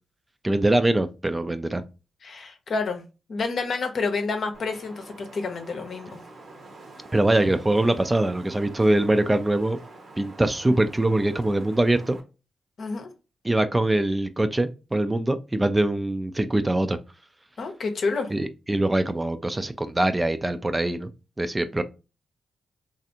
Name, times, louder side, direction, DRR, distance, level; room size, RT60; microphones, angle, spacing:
voice 1, 0.4-1.8 7.1-9.8 10.2-12.2 13.4-17.0 18.3-21.1 21.4-21.8, right 1 dB, 20° right, 0.4 m, -23 dB
voice 2, 2.2-3.0 3.3-6.2 12.8-13.1 17.6-18.3, left 4 dB, 60° left, 0.7 m, -29 dB
Wind, 4.5-12.2, right 2 dB, 60° right, 0.9 m, -46 dB
3.1 x 2.5 x 2.8 m
hypercardioid pair, 45°, 0 cm